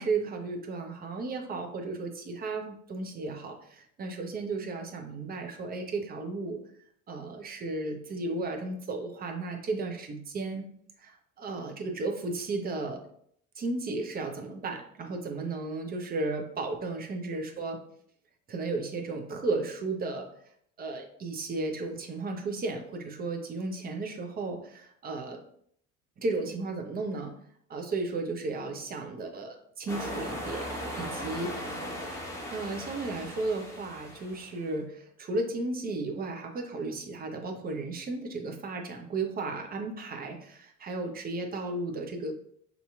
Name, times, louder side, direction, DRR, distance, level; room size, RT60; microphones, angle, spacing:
voice 1, 0.0-6.6 7.1-10.7 11.0-13.0 13.6-17.8 18.5-20.3 20.8-25.4 26.2-27.3 27.7-30.7 31.0-32.1 32.5-42.3, right 3 dB, 20° right, 4 dB, 0.5 m, -34 dB
sound 1, 29.9-34.6, equal, 5° left, 1.0 m, -38 dB
4.1 x 2.7 x 2.3 m, 0.66 s
figure-of-eight pair, 60°, 42 cm